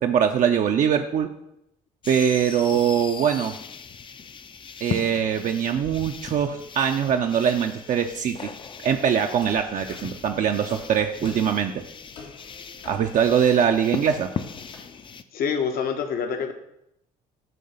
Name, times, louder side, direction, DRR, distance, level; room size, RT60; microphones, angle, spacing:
voice 1, 0.0-1.3 2.1-3.5 4.8-8.5 8.8-11.8 12.9-14.3, right 8 dB, 50° right, 4 dB, 0.5 m, -22 dB
sound 1, 2.0-15.2, left 6 dB, 30° left, 0.4 m, -38 dB
sound 2, 9.4-14.7, left 4 dB, 85° left, 1.6 m, -48 dB
voice 2, 15.3-16.5, left 6 dB, 65° left, 6 dB, 0.9 m, -26 dB
7.6 x 2.8 x 5.5 m, 0.80 s
supercardioid pair, 80°, 17 cm